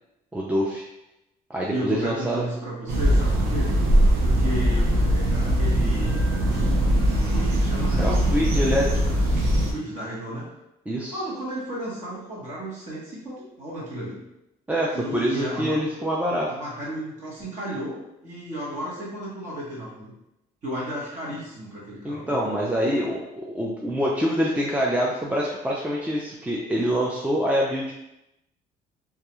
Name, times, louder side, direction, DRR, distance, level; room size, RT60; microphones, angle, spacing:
voice 1, 0.3-0.9 1.5-2.4 8.0-9.3 10.9-11.2 14.7-16.5 22.0-27.9, equal, 10° right, -4 dB, 0.3 m, -25 dB
voice 2, 1.7-3.7 4.2-8.0 8.3-8.6 9.7-10.5 11.1-14.2 14.9-15.7 16.5-18.0 18.2-20.1 20.6-22.4, right 1 dB, 45° right, -6 dB, 1.0 m, -33 dB
sound 1, 2.9-9.7, right 1 dB, 65° right, 0.6 m, -21 dB
2.3 x 2.2 x 2.9 m, 0.89 s
cardioid pair, 110°, 17 cm